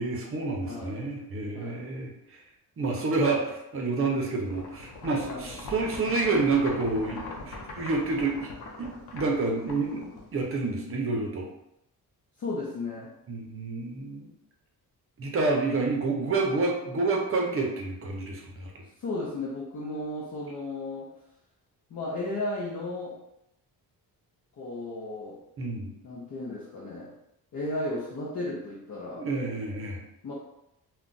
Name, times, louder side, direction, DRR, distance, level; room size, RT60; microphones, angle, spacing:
voice 1, 0.0-2.4 2.8-8.5 8.8-11.5 13.3-14.3 15.2-18.8 25.6-25.9 29.2-30.0, right 3 dB, 35° right, 0 dB, 0.6 m, -29 dB
voice 2, 0.6-1.1 1.5-1.9 5.3-5.5 12.4-13.1 19.0-21.1 21.9-23.2 24.6-25.4 26.0-27.1 27.5-29.3 30.2-30.3, left 2 dB, 50° left, -6 dB, 0.7 m, -34 dB
sound 1, 4.5-10.6, left 3 dB, 90° left, 0.7 m, -42 dB
2.4 x 2.3 x 3.8 m, 0.82 s
cardioid pair, 145°, 38 cm